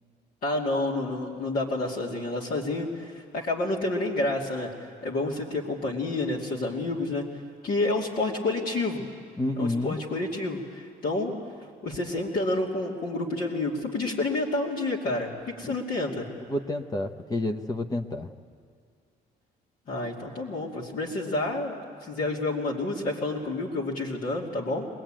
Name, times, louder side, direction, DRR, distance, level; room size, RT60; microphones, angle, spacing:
voice 1, 0.4-4.7 5.0-7.3 7.6-9.0 9.6-11.3 11.8-16.3 19.9-24.9, left 2 dB, 60° left, -4 dB, 2.7 m, -29 dB
voice 2, 9.4-9.9 15.6-15.7 16.5-18.3, left 2 dB, 20° left, 6 dB, 0.9 m, -29 dB
21.5 x 21.5 x 9.0 m, 2.3 s
cardioid pair, 110°, 17 cm